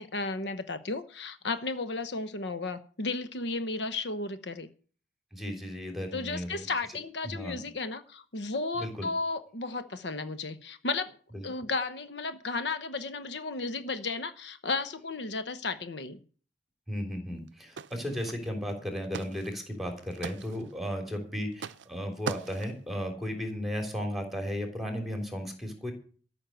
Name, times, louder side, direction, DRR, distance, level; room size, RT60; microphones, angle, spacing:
voice 1, 0.0-4.7 6.1-11.2 11.4-16.2, left 3 dB, 70° left, 11 dB, 1.0 m, -34 dB
voice 2, 5.3-6.7 7.2-7.6 8.8-9.1 11.3-11.5 16.9-25.9, equal, ahead, 4 dB, 3.2 m, -35 dB
sound 1, 17.5-17.6 17.8-18.7 19.0-19.5 19.8-20.7 21.5-21.9 22.3-22.8, right 6 dB, 80° right, 0.5 m, -40 dB
14.0 x 6.4 x 9.1 m, 0.42 s
head